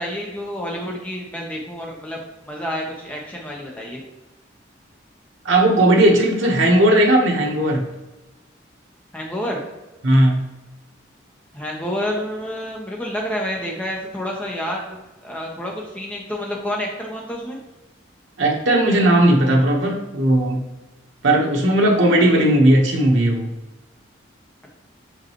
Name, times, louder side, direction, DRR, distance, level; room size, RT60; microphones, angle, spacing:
voice 1, 0.0-2.2 2.5-4.0 9.1-9.6 11.5-17.6, equal, 5° left, -2 dB, 0.8 m, -29 dB
voice 2, 5.4-7.9 10.0-10.4 18.4-20.6 21.2-23.5, right 1 dB, 80° right, 1 dB, 1.2 m, -16 dB
6.3 x 5.0 x 3.0 m, 1.1 s
head